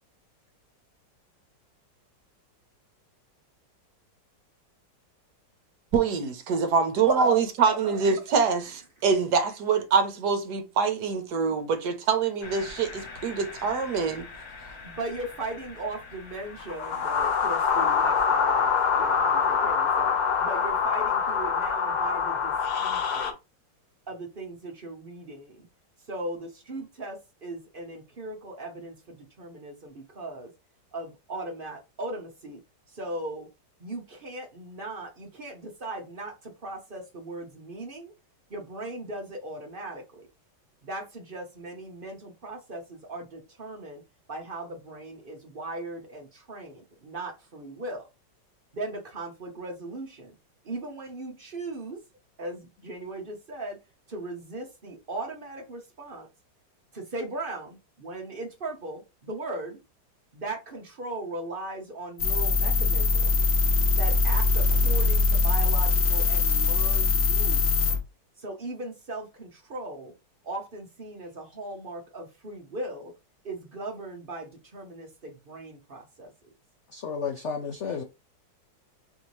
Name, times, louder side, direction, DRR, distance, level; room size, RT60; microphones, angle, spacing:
voice 1, 5.9-14.3, right 5 dB, 70° right, 1.2 m, -25 dB
voice 2, 7.7-8.0 14.8-20.1 20.4-23.3 24.1-25.7 26.1-30.5 30.9-32.6 32.9-33.5 33.8-38.1 38.5-40.3 40.8-44.0 44.3-48.1 48.7-50.3 50.6-52.0 52.4-53.8 54.1-56.3 56.9-59.8 60.3-63.4 63.9-67.7 68.4-70.1 70.4-73.1 73.4-76.5, right 2 dB, 45° right, 0.7 m, -38 dB
sound 1, 12.4-23.3, left 6 dB, 60° left, 1.2 m, -27 dB
sound 2, 62.2-68.0, left 3 dB, 45° left, 1.0 m, -22 dB
voice 3, 76.9-78.0, left 5 dB, 85° left, 0.6 m, -32 dB
4.5 x 2.7 x 3.1 m
omnidirectional pair, 2.0 m